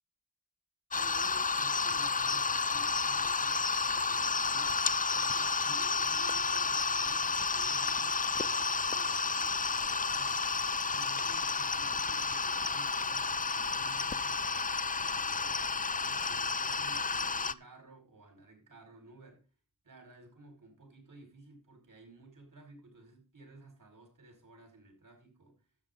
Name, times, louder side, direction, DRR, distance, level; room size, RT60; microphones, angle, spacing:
sound 1, 0.9-17.5, left 4 dB, 25° left, 0.5 m, -31 dB
voice 1, 0.9-4.8 5.2-10.4 10.9-15.5 16.0-19.4 19.8-25.6, right 2 dB, 75° right, 2 dB, 4.9 m, -55 dB
12.5 x 8.4 x 3.9 m, 0.34 s
wide cardioid pair, 50°, 32 cm